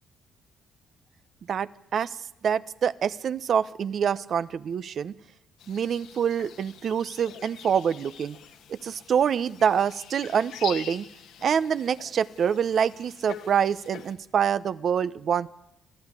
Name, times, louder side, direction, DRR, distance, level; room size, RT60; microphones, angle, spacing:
voice 1, 1.5-2.2 2.4-5.1 5.7-8.4 8.7-11.1 11.4-15.5, right 7 dB, 60° right, 16 dB, 0.8 m, -26 dB
sound 1, 5.6-14.1, left 9 dB, 85° left, 1.8 m, -45 dB
24.5 x 14.5 x 9.8 m, 0.90 s
cardioid pair, 90°, 0 cm